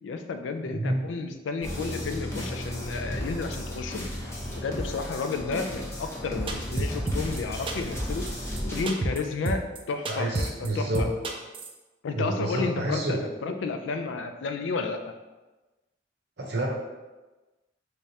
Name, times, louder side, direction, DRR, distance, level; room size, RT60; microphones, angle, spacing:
voice 1, 0.0-4.0 4.6-8.3 8.6-11.1 12.0-15.0, left 4 dB, 85° left, 6 dB, 0.4 m, -32 dB
voice 2, 0.6-1.0 10.1-11.1 12.1-13.2 16.4-16.7, right 1 dB, 60° right, -1 dB, 0.7 m, -29 dB
sound 1, 1.6-8.8, equal, 15° left, 0.7 m, -34 dB
sound 2, 6.5-7.4 7.7-8.0 8.3-8.4 8.6-8.7 8.9-9.2 9.5-9.8 10.0-10.7 10.9-11.7, right 2 dB, 30° right, 0.3 m, -28 dB
3.4 x 3.3 x 2.7 m, 1.2 s
head